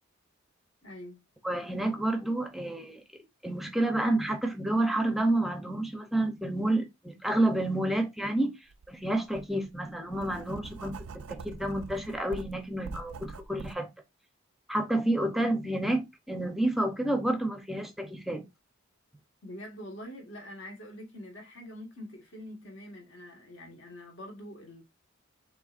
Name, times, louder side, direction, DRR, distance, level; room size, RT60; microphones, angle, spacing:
voice 1, 0.8-1.2 19.4-24.8, left 1 dB, 60° left, 1.6 m, -45 dB
voice 2, 1.4-3.0 3.4-8.5 8.9-13.9 14.7-18.5, right 1 dB, ahead, 0.6 m, -29 dB
Writing, 8.7-8.9 9.3-13.8, right 4 dB, 85° right, 0.4 m, -44 dB
6.7 x 2.8 x 2.5 m
head